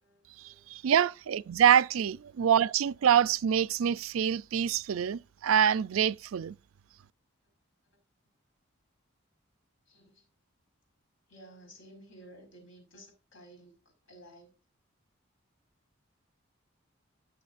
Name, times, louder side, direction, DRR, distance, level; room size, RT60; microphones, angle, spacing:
voice 1, 0.0-0.6 9.9-10.3 11.3-14.6, right 1 dB, 75° left, 4.9 m, -54 dB
voice 2, 0.7-6.5, right 9 dB, 90° right, 0.4 m, -25 dB
15.5 x 6.7 x 2.5 m
head